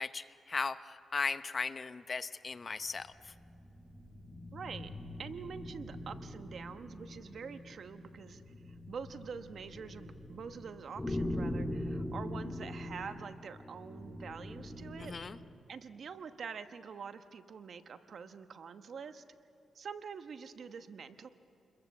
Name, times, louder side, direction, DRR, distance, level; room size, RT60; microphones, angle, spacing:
voice 1, 0.0-3.3 15.0-15.4, left 4 dB, 40° left, 12 dB, 0.7 m, -37 dB
sound 1, 2.9-15.5, left 1 dB, 15° left, 2.2 m, -42 dB
voice 2, 4.5-4.9 5.2-15.3 15.7-19.2 19.7-21.3, right 6 dB, 60° right, 9 dB, 1.1 m, -46 dB
28.5 x 22.0 x 7.2 m, 2.8 s
cardioid pair, 95°, 0 cm